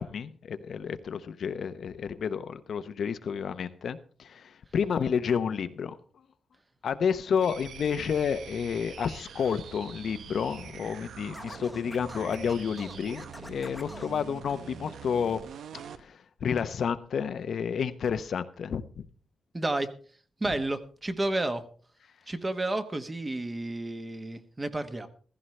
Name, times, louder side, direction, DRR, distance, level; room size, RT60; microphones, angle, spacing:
voice 1, 0.0-6.0 6.8-15.4 15.9-19.0, left 7 dB, 65° left, 0.7 m, -30 dB
sound 1, 7.4-16.0, right 7 dB, 75° right, 0.7 m, -45 dB
Scratching (performance technique), 11.3-14.1, left 1 dB, 10° left, 1.0 m, -45 dB
voice 2, 19.5-19.9 20.4-21.6 22.3-25.1, right 2 dB, 20° right, 1.1 m, -31 dB
15.5 x 14.0 x 3.2 m
wide cardioid pair, 125°, 0 cm